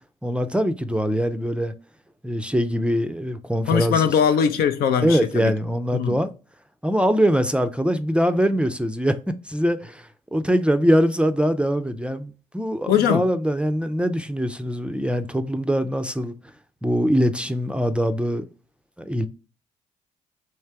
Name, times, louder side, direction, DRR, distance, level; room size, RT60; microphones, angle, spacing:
voice 1, 0.2-1.7 2.2-4.0 5.0-6.3 6.8-9.2 9.5-16.3 16.8-18.4 19.0-19.3, equal, 5° right, 0.4 m, -23 dB
voice 2, 3.7-5.5 5.9-6.2 12.9-13.2, left 8 dB, 65° left, 0.5 m, -21 dB
3.3 x 3.2 x 4.5 m
hypercardioid pair, 50°, 17 cm